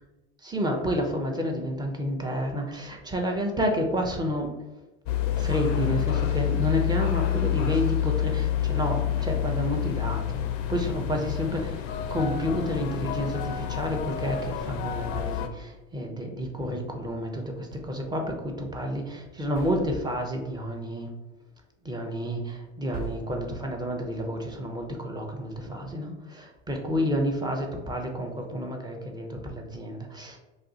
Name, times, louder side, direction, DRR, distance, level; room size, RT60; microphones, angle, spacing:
voice 1, 0.4-4.5 5.4-10.4 10.7-11.8 12.1-21.1 21.8-30.4, equal, 10° right, 2 dB, 0.5 m, -30 dB
sound 1, 5.1-15.5, left 11 dB, 45° left, 0.4 m, -28 dB
sound 2, 14.2-15.7 17.7-18.4 18.7-18.8 19.5-20.3 22.2-22.3 22.9-24.1, right 3 dB, 80° right, 1.2 m, -43 dB
2.4 x 2.4 x 3.8 m, 1.1 s
hypercardioid pair, 85°, 38 cm